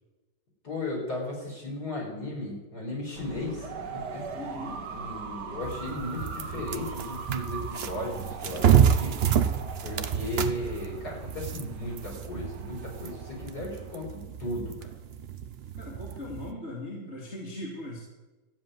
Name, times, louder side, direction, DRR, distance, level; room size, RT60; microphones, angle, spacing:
voice 1, 0.6-4.3 4.9-9.2 9.8-14.9, left 2 dB, 50° left, -3 dB, 5.3 m, -36 dB
sound 1, 3.1-14.0, right 5 dB, 60° right, 1.8 m, -41 dB
voice 2, 4.3-4.9 15.7-18.0, left 1 dB, 35° left, -4 dB, 2.8 m, -39 dB
sound 2, 5.6-16.5, right 8 dB, 75° right, 0.5 m, -28 dB
14.0 x 7.6 x 9.4 m, 1.1 s
omnidirectional pair, 2.2 m